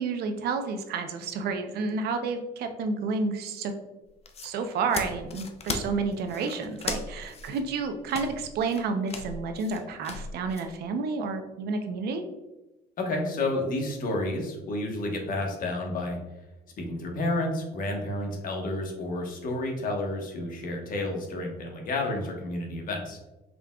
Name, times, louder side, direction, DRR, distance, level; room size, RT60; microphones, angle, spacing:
voice 1, 0.0-3.7 4.4-12.2, right 4 dB, 70° right, 6 dB, 0.6 m, -30 dB
sound 1, 4.1-10.7, left 4 dB, 40° left, 0.5 m, -37 dB
voice 2, 13.0-16.2 16.8-23.2, left 2 dB, 55° left, 1 dB, 1.1 m, -30 dB
5.1 x 3.5 x 2.3 m, 1.0 s
cardioid pair, 110°, 17 cm